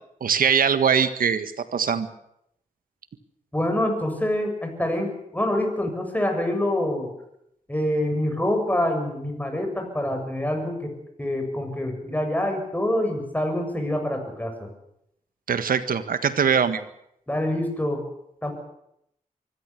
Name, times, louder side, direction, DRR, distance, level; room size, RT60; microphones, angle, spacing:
voice 1, 0.2-2.1 15.5-16.8, right 7 dB, 85° right, 11 dB, 1.6 m, -22 dB
voice 2, 3.5-7.1 7.7-10.9 11.2-14.7 17.3-18.0 18.4-18.5, left 1 dB, 10° left, 4 dB, 7.4 m, -26 dB
24.0 x 15.5 x 8.5 m, 0.77 s
cardioid pair, 65°, 14 cm